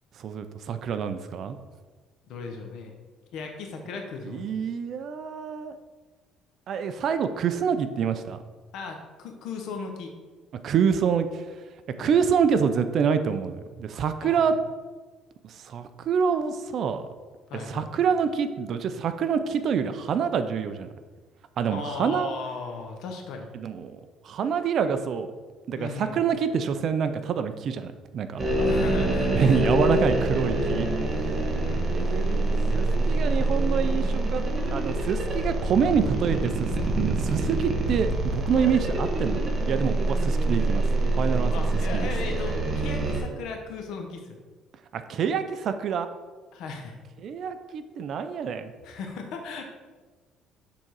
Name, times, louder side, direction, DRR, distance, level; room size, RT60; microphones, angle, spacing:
voice 1, 0.2-1.6 4.2-5.8 6.7-8.4 10.6-11.4 12.0-14.5 15.4-17.0 17.7-20.9 21.6-22.3 23.5-25.3 25.7-28.4 29.3-30.9 31.9-34.4 34.7-41.5 41.9-42.0 44.9-46.1 47.2-48.7, right 7 dB, 50° right, 10 dB, 0.5 m, -26 dB
voice 2, 2.3-2.9 3.3-4.5 8.7-10.1 12.0-12.1 14.2-14.6 17.5-17.9 21.7-23.5 25.7-26.2 28.5-29.8 31.6-32.2 38.5-38.8 41.5-44.4 46.5-47.0 48.8-49.7, left 4 dB, 70° left, 3 dB, 1.1 m, -37 dB
sound 1, 28.4-43.2, right 2 dB, 25° right, 1.3 m, -25 dB
6.8 x 3.7 x 4.7 m, 1.4 s
cardioid pair, 130°, 0 cm